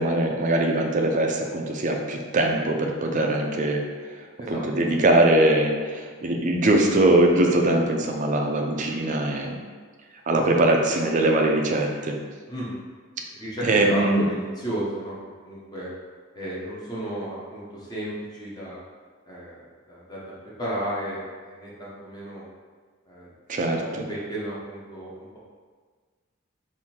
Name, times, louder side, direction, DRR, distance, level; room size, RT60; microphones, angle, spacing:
voice 1, 0.0-3.8 4.5-9.6 10.3-12.2 13.7-14.2 23.5-23.8, right 1 dB, 35° right, 2 dB, 0.4 m, -21 dB
voice 2, 10.3-10.6 12.5-12.8 13.3-15.2 15.4-15.9 16.3-18.8 19.3-22.4 23.1-23.3 23.7-25.4, right 1 dB, 20° left, -7 dB, 0.9 m, -33 dB
3.6 x 2.6 x 4.3 m, 1.5 s
head